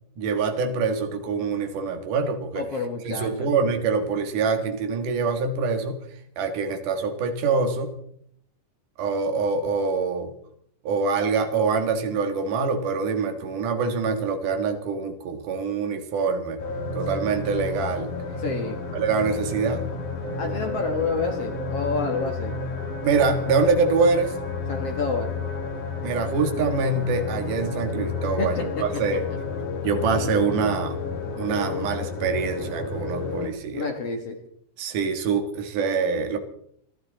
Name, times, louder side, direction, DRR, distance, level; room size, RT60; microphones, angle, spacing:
voice 1, 0.2-2.7 3.0-6.0 6.4-7.9 9.0-10.3 10.8-16.6 16.9-18.1 18.9-19.9 23.0-24.4 26.0-29.3 29.8-31.0 31.4-33.9 34.8-36.4, right 4 dB, 55° right, 6 dB, 2.9 m, -25 dB
voice 2, 2.5-3.5 18.4-18.8 20.4-22.5 24.7-25.3 28.3-29.2 33.7-34.4, left 4 dB, 60° left, 3 dB, 1.6 m, -29 dB
sound 1, 16.6-33.5, left 4 dB, 45° left, 2.9 m, -31 dB
29.0 x 11.5 x 4.1 m, 0.70 s
omnidirectional pair, 4.9 m